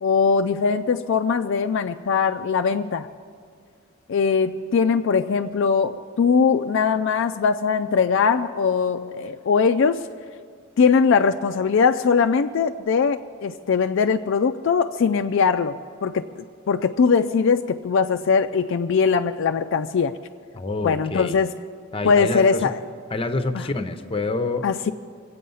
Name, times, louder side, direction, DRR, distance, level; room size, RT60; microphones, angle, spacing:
voice 1, 0.0-3.1 4.1-10.0 10.8-16.2 16.7-20.1 20.8-21.5 22.0-22.8 23.5-23.7 24.6-24.9, left 5 dB, 60° left, 6 dB, 0.4 m, -21 dB
voice 2, 20.5-21.4 21.9-22.7 23.1-24.7, left 2 dB, 25° left, 9 dB, 0.7 m, -27 dB
23.5 x 8.4 x 5.5 m, 2.1 s
head